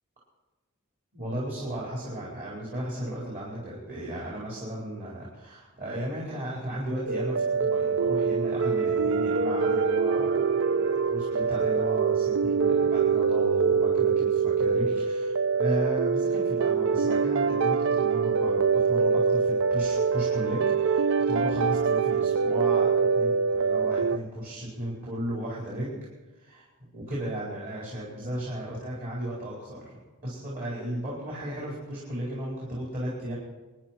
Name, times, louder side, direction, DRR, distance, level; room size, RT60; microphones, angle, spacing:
voice 1, 1.1-15.3 15.6-26.0 26.4-26.6 26.9-33.4, right 1 dB, 45° right, -6 dB, 4.6 m, -35 dB
sound 1, 7.1-24.2, right 5 dB, 65° right, 0.5 m, -24 dB
25.5 x 10.5 x 4.5 m, 1.2 s
head